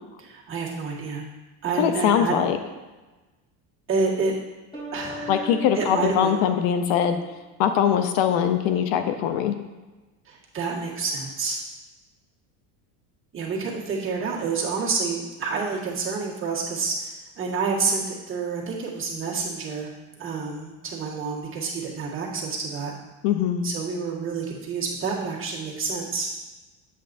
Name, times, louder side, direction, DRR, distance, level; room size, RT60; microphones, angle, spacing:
voice 1, 0.2-1.3 1.6-2.4 3.9-4.3 4.9-5.5 5.7-6.4 10.2-11.6 13.3-19.9 20.2-22.9 23.6-26.3, right 4 dB, 25° right, -5 dB, 1.7 m, -28 dB
voice 2, 1.8-2.6 5.3-7.2 7.6-9.6 23.2-23.6, left 9 dB, 70° left, 8 dB, 0.7 m, -22 dB
sound 1, 4.7-7.4, equal, 10° left, 2.5 m, -39 dB
8.0 x 7.4 x 2.6 m, 1.2 s
cardioid pair, 130°, 46 cm